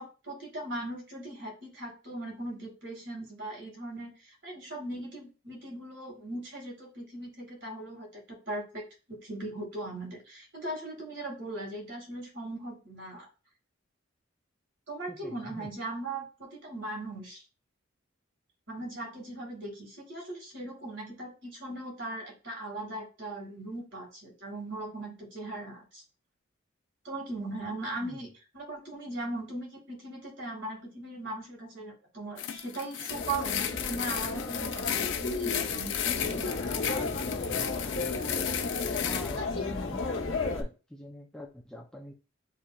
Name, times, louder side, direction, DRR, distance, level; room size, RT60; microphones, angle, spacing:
voice 1, 0.0-13.3 14.9-17.4 18.7-26.0 27.0-36.9, right 2 dB, 65° right, -1 dB, 2.1 m, -39 dB
voice 2, 15.1-15.7 28.0-28.2 39.0-42.1, left 1 dB, 5° left, 1 dB, 0.5 m, -44 dB
sound 1, 32.4-39.4, left 10 dB, 65° left, 0.5 m, -34 dB
sound 2, 33.1-40.6, left 3 dB, 85° left, 1.1 m, -33 dB
6.6 x 3.0 x 2.4 m, 0.32 s
head